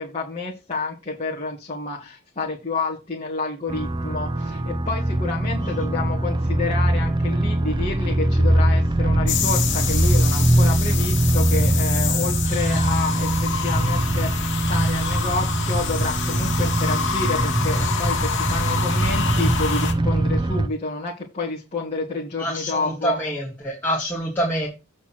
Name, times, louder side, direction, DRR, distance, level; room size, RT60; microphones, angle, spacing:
voice 1, 0.0-23.2, left 3 dB, 30° left, -4 dB, 2.0 m, -29 dB
sound 1, 3.7-20.7, right 1 dB, 20° right, 0.6 m, -22 dB
sound 2, 9.3-19.9, left 8 dB, 55° left, 2.0 m, -28 dB
voice 2, 22.4-24.7, equal, 10° left, -5 dB, 2.7 m, -26 dB
8.6 x 4.2 x 5.9 m, 0.27 s
head